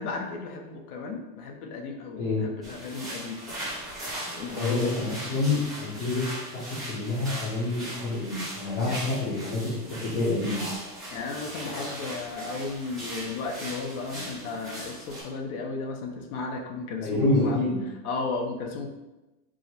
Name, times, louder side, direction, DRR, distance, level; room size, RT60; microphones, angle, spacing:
voice 1, 0.0-3.4 4.3-4.8 8.8-9.0 11.1-17.6 18.0-18.9, left 3 dB, 70° left, 3 dB, 0.8 m, -34 dB
sound 1, 2.6-15.2, right 1 dB, ahead, 0.5 m, -39 dB
voice 2, 4.5-6.2 6.5-10.7 17.0-17.8, left 2 dB, 30° left, -7 dB, 0.8 m, -28 dB
4.7 x 2.1 x 4.2 m, 1.1 s
supercardioid pair, 180°, 46 cm